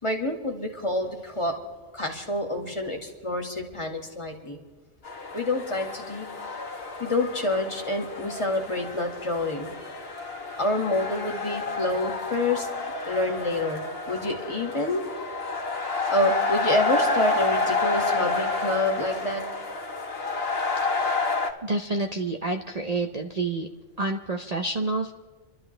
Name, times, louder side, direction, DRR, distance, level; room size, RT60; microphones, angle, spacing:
voice 1, 0.0-1.5 1.9-4.6 5.3-6.3 7.0-9.7 10.6-12.7 13.1-13.8 14.1-15.0 16.1-19.4, left 2 dB, 25° left, 2 dB, 2.0 m, -27 dB
sound 1, 5.0-21.5, left 3 dB, 55° left, 1.6 m, -29 dB
voice 2, 20.8-21.3 21.6-23.7 24.0-25.1, right 2 dB, 40° right, 3 dB, 0.8 m, -29 dB
28.5 x 12.5 x 3.3 m, 1.3 s
omnidirectional pair, 1.2 m